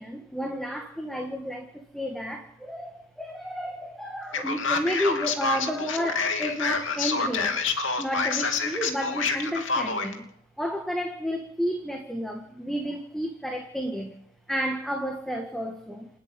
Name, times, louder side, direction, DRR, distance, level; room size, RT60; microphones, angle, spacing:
voice 1, 0.0-7.7 8.0-10.3 10.6-14.1 14.5-16.1, equal, ahead, 3 dB, 1.9 m, -31 dB
Male speech man speaking, 4.3-10.1, left 4 dB, 65° left, 3.0 m, -27 dB
29.0 x 9.9 x 9.1 m, 0.71 s
head